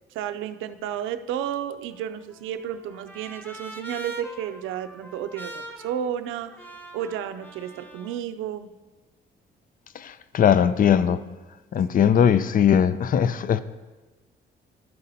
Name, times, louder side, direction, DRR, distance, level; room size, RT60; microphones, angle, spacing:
voice 1, 0.1-6.5 6.9-8.7, right 10 dB, 90° right, 0.5 m, -32 dB
Trumpet, 1.9-8.2, right 2 dB, 10° left, 0.8 m, -43 dB
voice 2, 9.9-11.2 11.7-13.6, left 8 dB, 45° left, 0.4 m, -20 dB
12.0 x 4.1 x 4.1 m
cardioid pair, 90°, 20 cm